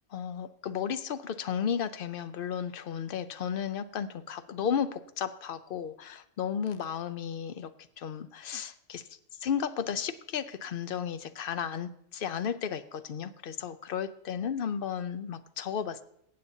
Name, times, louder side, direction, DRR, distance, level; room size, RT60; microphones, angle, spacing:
voice 1, 0.1-7.7 8.0-9.0 9.4-16.0, left 8 dB, 55° left, 12 dB, 0.7 m, -34 dB
22.0 x 8.5 x 2.7 m, 0.72 s
omnidirectional pair, 1.2 m